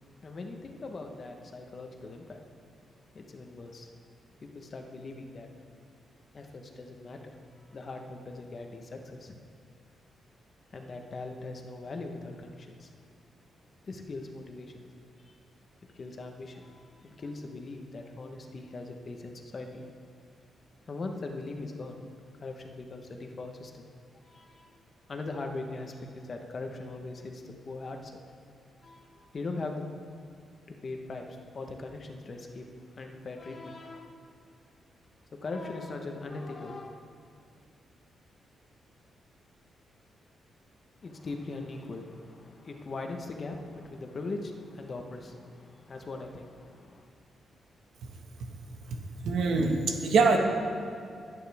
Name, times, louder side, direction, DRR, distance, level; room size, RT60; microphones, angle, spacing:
voice 1, 0.2-2.4 3.1-3.9 4.4-5.5 6.3-9.4 10.7-12.9 13.8-14.8 15.2-15.3 15.8-19.9 20.9-22.0 22.3-23.8 24.2-24.8 25.1-28.1 28.8-29.8 30.7-32.7 32.9-34.1 35.3-36.9 41.0-47.1, left 3 dB, 35° left, 3 dB, 1.0 m, -40 dB
voice 2, 49.2-50.4, right 4 dB, 75° right, 2 dB, 1.5 m, -23 dB
21.0 x 9.1 x 3.5 m, 2.4 s
wide cardioid pair, 155°, 0 cm